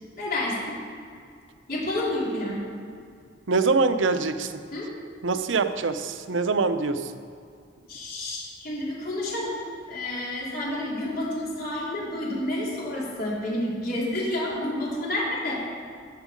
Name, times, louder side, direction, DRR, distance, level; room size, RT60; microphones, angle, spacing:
voice 1, 0.2-0.8 1.7-2.6 4.7-4.9 7.9-9.6 9.9-15.5, left 1 dB, 50° left, -5 dB, 3.4 m, -29 dB
voice 2, 3.5-4.6 5.2-7.1, right 4 dB, 80° right, 9 dB, 0.7 m, -24 dB
14.5 x 7.4 x 5.2 m, 2.3 s
head